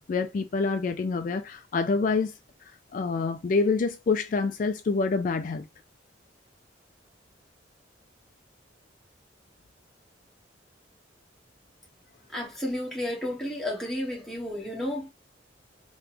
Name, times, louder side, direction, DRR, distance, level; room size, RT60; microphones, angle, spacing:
voice 1, 0.1-2.3 2.9-5.7, left 4 dB, 45° left, 0.3 m, -26 dB
voice 2, 12.3-15.1, left 1 dB, ahead, 1.4 m, -32 dB
3.3 x 3.0 x 3.3 m
head